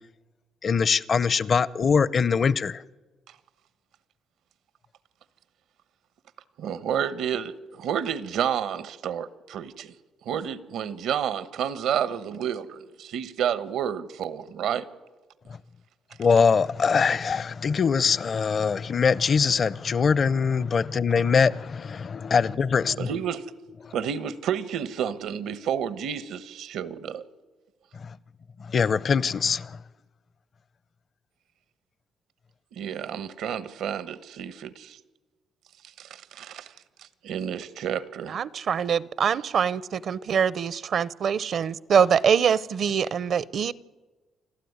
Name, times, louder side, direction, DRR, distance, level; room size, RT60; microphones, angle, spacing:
voice 1, 0.6-2.8 16.2-23.1 23.8-23.9 27.9-28.2 28.6-29.8, left 5 dB, 45° left, 0.6 m, -23 dB
voice 2, 6.6-9.9 10.2-14.8 23.0-23.4 23.9-27.2 32.8-35.0 36.0-36.7 37.0-38.4, right 8 dB, 80° right, 1.0 m, -30 dB
voice 3, 38.3-43.7, right 7 dB, 60° right, 0.6 m, -24 dB
28.5 x 12.5 x 9.5 m
cardioid pair, 90°, 0 cm